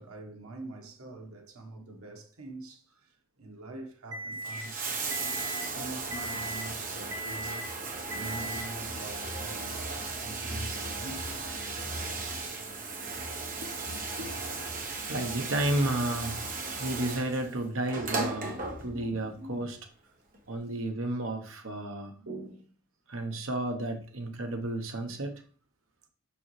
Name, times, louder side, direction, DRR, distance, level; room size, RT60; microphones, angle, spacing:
voice 1, 0.0-11.6 18.4-19.7 20.5-20.7 22.3-22.7 23.7-23.8, right 2 dB, 90° right, 1.3 m, -45 dB
Alarm, 4.1-4.6 5.1-5.6 6.1-6.6 7.1-7.6 8.1-8.6, right 1 dB, 20° right, 1.5 m, -38 dB
Bathtub (filling or washing), 4.3-19.2 20.3-20.4, right 3 dB, 40° right, 1.3 m, -36 dB
voice 2, 14.1-14.8 15.1-16.4 16.8-18.6 18.8-19.8 20.5-22.3 23.1-25.3, right 1 dB, 65° right, 1.0 m, -32 dB
6.8 x 6.3 x 3.2 m
head